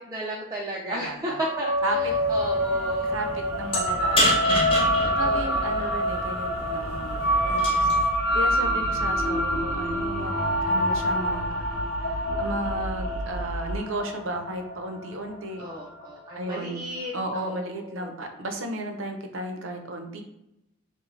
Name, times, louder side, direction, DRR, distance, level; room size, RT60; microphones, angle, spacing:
voice 1, 0.0-3.2 5.2-5.9 15.6-18.1, right 1 dB, 20° right, -4 dB, 0.5 m, -34 dB
voice 2, 0.8-1.4 1.8-2.0 3.0-3.3 3.6-7.9 8.3-10.3 10.7-11.7 12.0-15.6 16.3-16.8 17.1-20.2, right 1 dB, 70° right, 5 dB, 0.7 m, -34 dB
sound 1, 1.4-16.1, equal, 50° left, 0.6 m, -26 dB
sound 2, 1.8-13.8, right 2 dB, 90° right, 0.4 m, -38 dB
sound 3, 2.0-8.1, equal, 25° left, 1.0 m, -31 dB
6.3 x 2.2 x 3.2 m, 0.83 s
head